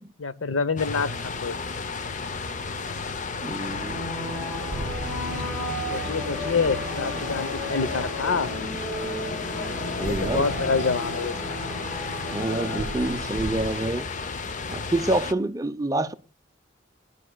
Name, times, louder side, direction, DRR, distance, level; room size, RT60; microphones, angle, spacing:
voice 1, 0.2-1.6 5.9-8.5 10.0-11.5, left 4 dB, 90° left, 0.8 m, -27 dB
sound 1, 0.8-15.3, left 4 dB, 40° left, 0.6 m, -33 dB
voice 2, 3.4-4.0 10.0-10.5 12.3-14.1 14.7-16.1, right 2 dB, 20° right, 0.6 m, -27 dB
sound 2, 3.6-13.9, equal, 5° left, 2.6 m, -34 dB
sound 3, 3.8-13.3, left 3 dB, 65° left, 1.5 m, -39 dB
21.0 x 10.0 x 2.2 m
head